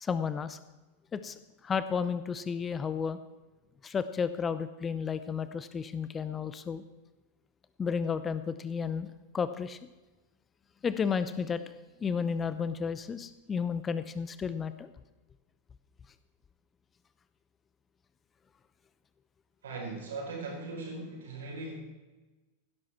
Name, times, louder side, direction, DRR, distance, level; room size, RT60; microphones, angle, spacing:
voice 1, 0.0-0.6 1.1-3.2 3.8-6.8 7.8-9.8 10.8-11.7 12.0-14.9, left 6 dB, 20° left, 13 dB, 0.7 m, -32 dB
voice 2, 19.6-21.8, right 3 dB, 65° right, 0 dB, 5.2 m, -39 dB
16.5 x 12.0 x 4.5 m, 1.2 s
figure-of-eight pair, 90°, 0 cm